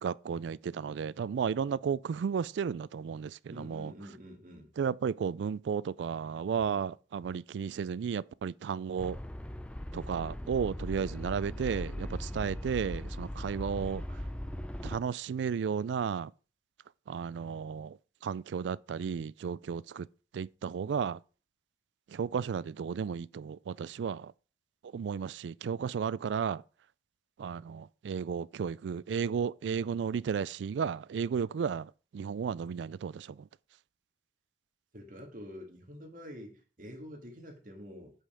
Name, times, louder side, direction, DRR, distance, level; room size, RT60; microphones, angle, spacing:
voice 1, 0.0-3.9 4.8-9.2 9.9-14.0 14.8-16.3 17.1-18.0 18.2-20.1 20.3-21.2 22.1-24.3 24.9-26.6 27.4-33.4, right 6 dB, 80° right, 0.3 m, -33 dB
voice 2, 3.5-4.7 6.7-6.9 12.3-12.5 13.3-13.5 34.9-38.1, equal, 45° right, 2.1 m, -47 dB
sound 1, 9.0-15.0, left 1 dB, 5° left, 0.5 m, -39 dB
8.3 x 5.6 x 5.0 m
head